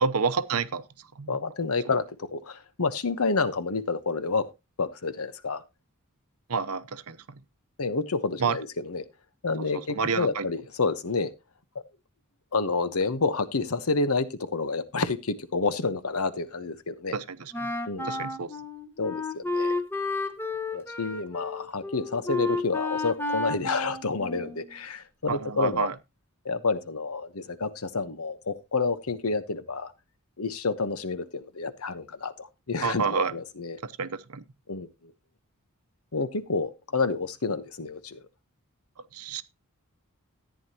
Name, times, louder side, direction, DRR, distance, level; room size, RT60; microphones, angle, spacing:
voice 1, 0.0-0.8 1.2-1.4 6.5-7.2 8.4-8.6 9.9-10.5 17.1-17.7 18.1-18.5 25.3-25.9 32.8-33.3 33.8-34.4 39.1-39.4, right 5 dB, 80° right, 0.8 m, -28 dB
voice 2, 1.3-4.5 4.8-5.6 7.8-9.0 9.4-11.3 11.7-11.8 12.5-17.1 17.9-18.3 19.0-19.8 20.7-25.9 26.4-29.9 30.4-33.0 33.3-33.8 34.7-34.9 36.1-38.2, left 4 dB, 75° left, 1.1 m, -29 dB
Wind instrument woodwind instrument, 17.5-24.7, left 2 dB, 10° left, 1.1 m, -32 dB
14.0 x 9.5 x 2.9 m
head